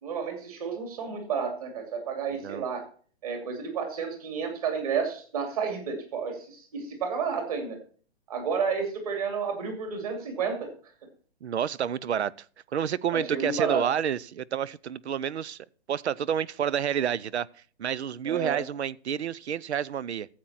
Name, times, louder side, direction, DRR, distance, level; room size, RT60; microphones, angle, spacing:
voice 1, 0.0-2.8 3.2-7.8 8.3-10.7 13.1-13.9 18.2-18.6, right 6 dB, 35° right, 2.7 m, -31 dB
voice 2, 11.4-12.3 12.7-15.6 15.9-17.5 17.8-20.3, right 9 dB, 80° right, 0.7 m, -29 dB
14.0 x 7.7 x 4.2 m
hypercardioid pair, 175°, 33 cm